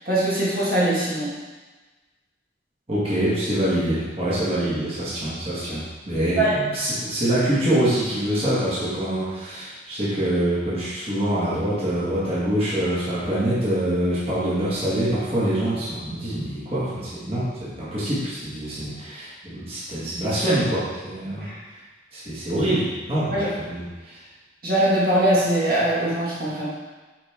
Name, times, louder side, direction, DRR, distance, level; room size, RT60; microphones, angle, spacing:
voice 1, 0.1-1.3 6.3-6.5 21.4-21.6 23.3-23.5 24.6-26.7, right 1 dB, 50° right, -8 dB, 2.0 m, -21 dB
voice 2, 2.9-21.5 22.1-24.2, right 1 dB, 30° right, -10 dB, 2.0 m, -25 dB
8.2 x 4.6 x 3.7 m, 1.2 s
head